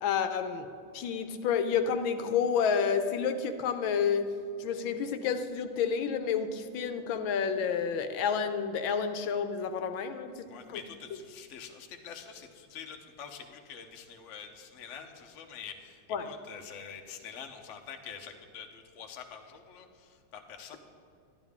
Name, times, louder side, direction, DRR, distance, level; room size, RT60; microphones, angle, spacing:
voice 1, 0.0-4.3 4.6-10.8 16.1-16.3, left 6 dB, 75° left, 9 dB, 1.4 m, -30 dB
voice 2, 10.4-20.8, left 7 dB, 55° left, 4 dB, 0.8 m, -46 dB
12.0 x 11.0 x 3.6 m, 2.4 s
omnidirectional pair, 2.3 m